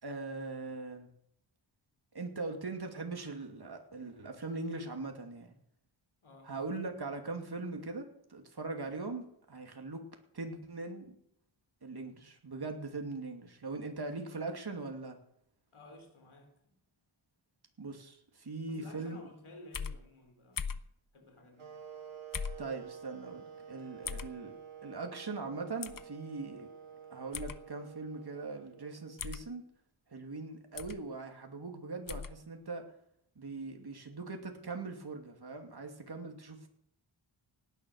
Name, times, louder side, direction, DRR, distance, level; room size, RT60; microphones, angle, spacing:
voice 1, 0.0-1.1 2.1-5.6 6.4-10.1 10.3-11.1 11.8-15.2 17.8-19.2 22.6-24.5 24.8-26.7 27.1-29.6 30.1-32.8 33.4-36.7, right 3 dB, 50° right, 2.7 m, -41 dB
voice 2, 6.2-6.6 14.0-14.4 15.7-16.6 18.6-20.7 21.1-21.8, left 2 dB, 85° left, 3.8 m, -54 dB
sound 1, 19.7-20.0 20.6-20.9 22.3-22.6 24.1-24.3 25.8-26.0 27.3-27.6 29.2-29.5 30.8-31.0 32.1-32.3, left 6 dB, 45° left, 0.8 m, -38 dB
sound 2, 21.6-29.6, right 8 dB, 85° right, 2.5 m, -50 dB
17.5 x 10.5 x 6.5 m
wide cardioid pair, 80°, 48 cm